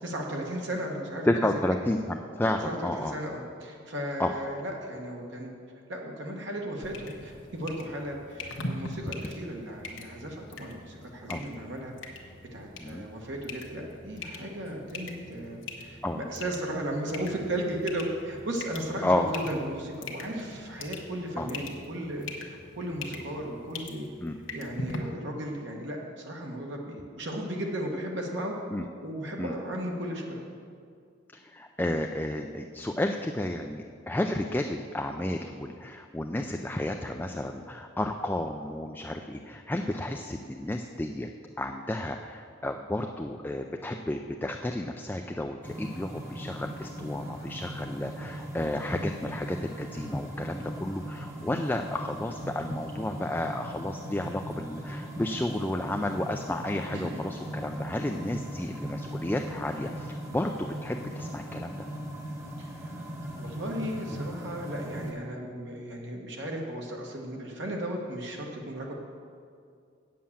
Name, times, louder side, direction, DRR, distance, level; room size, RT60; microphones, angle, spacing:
voice 1, 0.0-1.5 2.6-5.5 5.9-12.2 12.5-24.1 24.5-28.5 29.0-30.4 56.9-57.2 62.6-68.9, right 1 dB, 65° right, 0 dB, 1.2 m, -35 dB
voice 2, 1.3-3.1 4.2-4.3 11.3-11.4 12.8-13.1 16.0-16.2 19.0-19.4 21.4-21.5 24.2-24.4 28.7-28.8 29.4-29.5 31.4-41.3 41.6-61.9, left 1 dB, 10° left, 3 dB, 0.3 m, -32 dB
sound 1, 6.8-25.0, left 2 dB, 80° left, 1.2 m, -42 dB
sound 2, 45.6-65.1, equal, 15° right, 1.1 m, -38 dB
8.5 x 7.6 x 7.1 m, 2.3 s
head